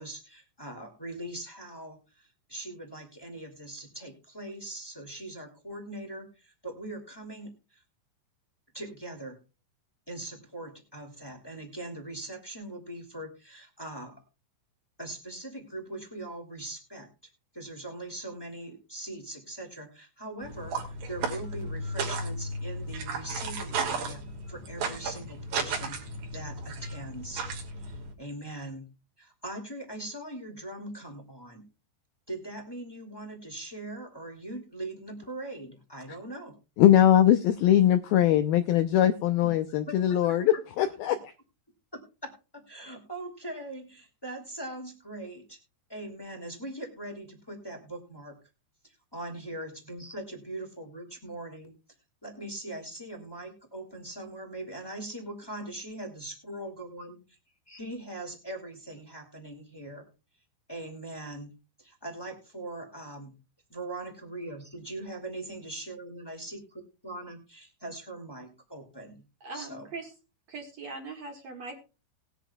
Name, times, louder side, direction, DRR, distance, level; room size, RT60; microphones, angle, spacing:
voice 1, 0.0-7.8 8.7-9.4 10.1-14.1 15.0-17.1 17.5-26.0 26.3-27.4 27.8-28.9 29.2-31.6 32.3-36.5 39.4-39.5 39.9-40.0 40.2-40.4 41.9-45.6 45.9-48.4 48.8-51.7 52.2-57.4 57.7-60.1 60.7-61.5 61.8-63.3 63.7-66.6 67.0-69.2 69.5-69.9, right 1 dB, 15° left, 3 dB, 0.8 m, -41 dB
sound 1, 20.4-28.1, right 3 dB, 65° right, 4.6 m, -34 dB
voice 2, 36.8-41.2, left 11 dB, 90° left, 9 dB, 2.1 m, -21 dB
voice 3, 69.4-70.1 70.5-71.8, right 3 dB, 50° right, 3 dB, 2.3 m, -40 dB
19.5 x 10.0 x 2.3 m, 0.30 s
omnidirectional pair, 5.2 m